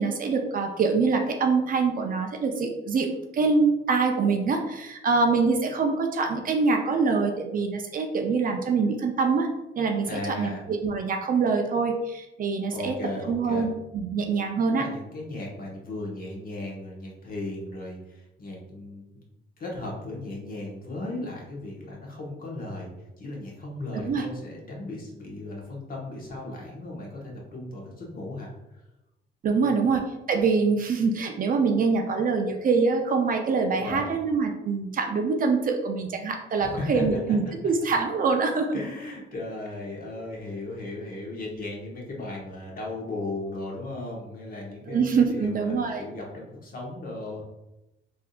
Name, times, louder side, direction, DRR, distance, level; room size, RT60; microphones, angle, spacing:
voice 1, 0.0-9.5 9.8-10.1 10.4-13.0 13.3-14.8 24.0-24.3 29.4-38.8 44.9-46.0, right 4 dB, 45° right, 4 dB, 0.5 m, -24 dB
voice 2, 10.1-10.6 12.7-13.7 14.7-19.3 19.6-22.9 23.2-28.8 29.5-29.9 33.8-34.1 36.6-37.0 38.7-47.4, left 2 dB, 45° left, -2 dB, 1.1 m, -36 dB
3.5 x 2.7 x 2.4 m, 0.94 s
cardioid pair, 90°, 20 cm